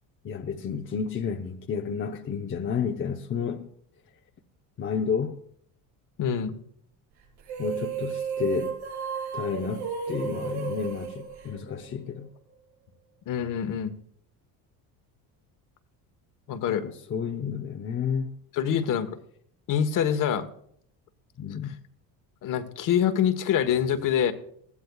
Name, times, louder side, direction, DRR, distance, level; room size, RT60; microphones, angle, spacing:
voice 1, 0.2-3.7 4.8-5.4 7.6-8.7 9.3-12.3 16.8-18.3 21.4-21.8, left 6 dB, 30° left, 0.8 m, -31 dB
voice 2, 6.2-6.6 13.3-13.9 16.5-16.9 18.5-19.1 19.7-20.5 22.4-24.3, left 8 dB, 50° left, 1.2 m, -25 dB
sound 1, 7.4-12.1, right 7 dB, 80° right, 6.6 m, -33 dB
20.0 x 15.0 x 2.3 m
cardioid pair, 125°, 40 cm